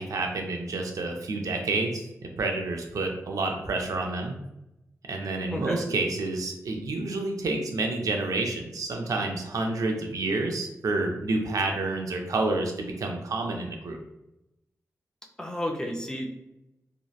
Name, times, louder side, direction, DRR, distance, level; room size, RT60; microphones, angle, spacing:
voice 1, 0.0-2.1 2.4-4.4 5.1-14.0, right 2 dB, 75° right, 2 dB, 0.4 m, -29 dB
voice 2, 5.5-5.9 15.4-16.3, left 1 dB, 10° left, 0 dB, 0.3 m, -32 dB
2.7 x 2.0 x 2.2 m, 0.88 s
wide cardioid pair, 120°, 6 cm